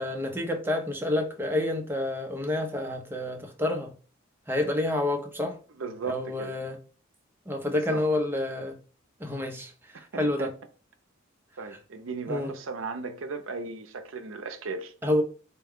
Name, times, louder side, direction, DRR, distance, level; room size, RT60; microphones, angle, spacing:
voice 1, 0.0-3.9 4.5-5.6 6.1-6.8 7.5-8.8 9.2-10.5 11.7-11.8 12.3-12.5 15.0-15.2, left 1 dB, 10° right, 0.6 m, -29 dB
voice 2, 5.8-6.5 7.7-8.0 9.9-10.5 11.6-14.9, right 4 dB, 70° right, 0.6 m, -36 dB
4.4 x 2.2 x 3.5 m
head